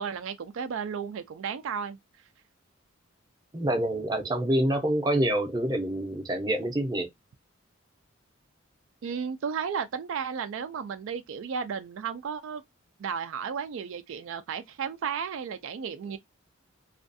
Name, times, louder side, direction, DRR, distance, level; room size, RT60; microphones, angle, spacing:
voice 1, 0.0-2.0 9.0-12.6 13.0-16.2, right 6 dB, 70° right, 0.3 m, -33 dB
voice 2, 3.5-7.1, right 1 dB, 20° right, 0.6 m, -26 dB
2.4 x 2.3 x 2.5 m
head